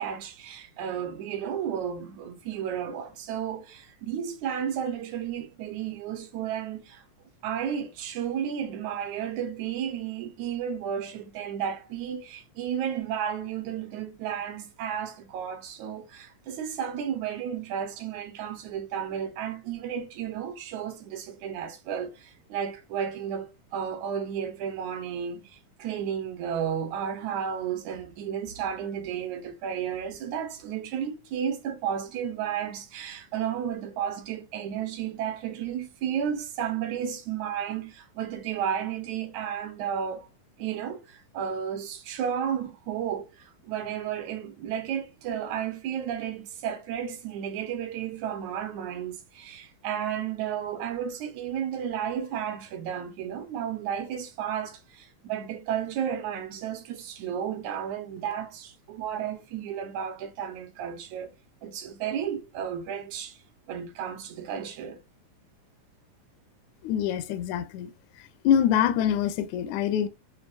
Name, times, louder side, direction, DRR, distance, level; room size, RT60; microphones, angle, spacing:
voice 1, 0.0-7.0 7.4-40.3 40.6-61.3 61.6-63.4 63.7-65.0, right 8 dB, 70° right, 2.1 m, -33 dB
voice 2, 66.8-67.9 68.4-70.1, left 9 dB, 80° left, 1.8 m, -24 dB
6.3 x 2.5 x 2.7 m
omnidirectional pair, 3.8 m